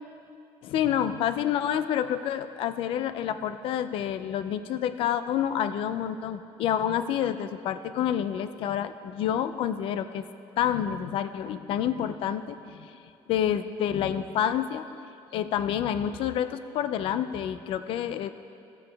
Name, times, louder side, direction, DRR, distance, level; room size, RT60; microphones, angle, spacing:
voice 1, 0.6-10.2 10.6-12.9 13.3-14.8 15.3-18.3, left 9 dB, 55° left, 12 dB, 0.4 m, -28 dB
15.5 x 7.0 x 3.4 m, 2.6 s
cardioid pair, 180°, 11 cm